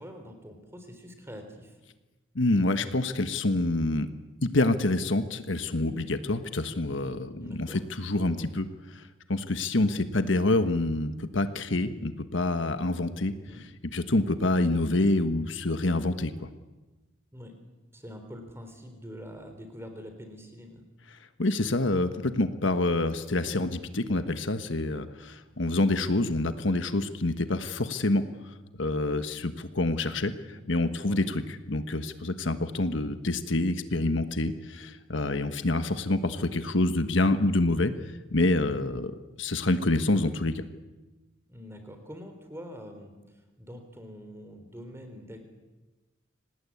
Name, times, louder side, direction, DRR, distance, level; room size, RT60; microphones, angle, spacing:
voice 1, 0.0-1.8 7.4-7.8 13.3-13.7 17.3-17.5 17.9-20.8 30.4-30.6 31.0-31.2 41.5-43.1 43.6-45.4, equal, 15° right, 6 dB, 3.7 m, -44 dB
voice 2, 2.3-4.1 4.4-8.7 8.9-9.0 9.3-13.3 13.6-16.3 21.4-28.2 28.8-30.3 30.7-31.4 31.7-37.9 38.3-39.1 39.4-40.6, left 2 dB, 65° left, 10 dB, 1.4 m, -27 dB
26.0 x 19.0 x 8.6 m, 1.2 s
head